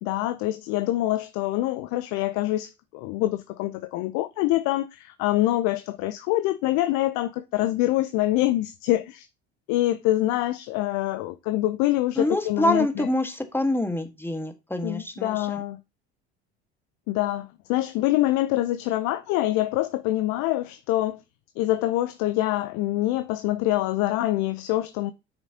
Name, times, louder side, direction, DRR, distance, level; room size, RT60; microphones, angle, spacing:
voice 1, 0.0-9.3 9.7-13.1 14.8-15.8 17.1-21.2 21.6-25.1, left 15 dB, 60° left, 0.7 m, -25 dB
voice 2, 12.1-15.6, left 1 dB, 5° left, 1.6 m, -26 dB
9.5 x 6.1 x 2.9 m
hypercardioid pair, 65°, 32 cm